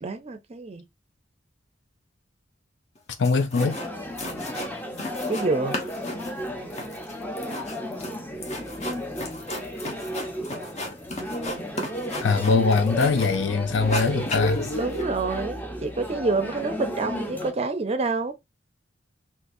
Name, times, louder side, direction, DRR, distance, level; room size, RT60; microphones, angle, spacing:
voice 1, 0.0-0.8 5.3-5.8 14.7-18.4, right 3 dB, 35° right, 0.5 m, -27 dB
sound 1, 3.0-3.1 3.2-3.9 4.2-5.5 5.7-13.4 13.7-15.0, left 1 dB, 35° left, 0.9 m, -33 dB
voice 2, 3.2-3.8 12.2-14.7, left 4 dB, 70° left, 0.5 m, -22 dB
sound 2, 3.6-17.5, equal, 10° left, 0.6 m, -34 dB
3.9 x 2.5 x 2.6 m
head